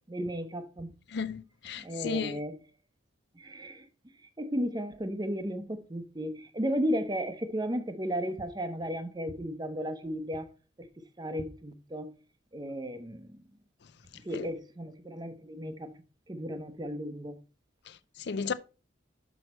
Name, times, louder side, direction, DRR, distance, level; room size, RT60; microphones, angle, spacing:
voice 1, 0.1-0.9 1.8-2.5 3.4-3.8 4.4-10.5 11.2-12.1 12.5-13.3 14.2-15.9 16.3-17.4, equal, 20° right, 0.8 m, -34 dB
voice 2, 1.1-2.4 14.3-14.5 17.9-18.5, left 5 dB, 60° left, 0.5 m, -34 dB
6.2 x 6.2 x 4.3 m
head